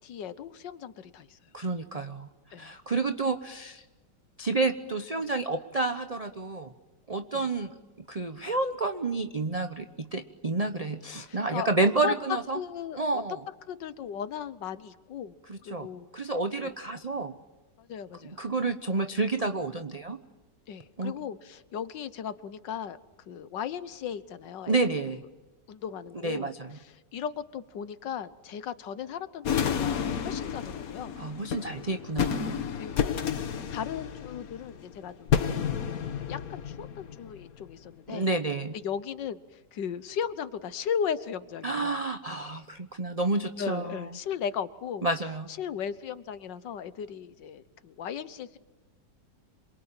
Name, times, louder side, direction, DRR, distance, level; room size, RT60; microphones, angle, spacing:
voice 1, 0.0-1.4 2.5-2.8 7.3-7.5 11.3-11.7 12.0-12.1 12.5-13.2 13.7-15.4 15.6-16.1 16.6-16.7 17.8-18.4 20.7-23.0 23.3-25.0 25.7-26.5 27.1-31.2 32.7-33.1 33.7-35.7 36.3-38.3 38.8-42.0 43.6-45.1 45.6-48.6, left 8 dB, 80° left, 14 dB, 1.8 m, -36 dB
voice 2, 1.5-2.3 2.6-3.8 4.4-6.7 7.1-7.8 8.1-12.6 12.9-13.4 15.5-15.9 16.1-17.3 18.4-20.2 21.0-21.1 24.7-25.2 26.2-26.7 31.2-32.7 38.1-38.7 41.6-44.2 45.0-45.5, right 3 dB, 30° right, 7 dB, 0.8 m, -30 dB
sound 1, 29.4-37.7, left 8 dB, 55° left, 1.5 m, -31 dB
27.5 x 23.0 x 9.0 m, 1.1 s
omnidirectional pair, 1.9 m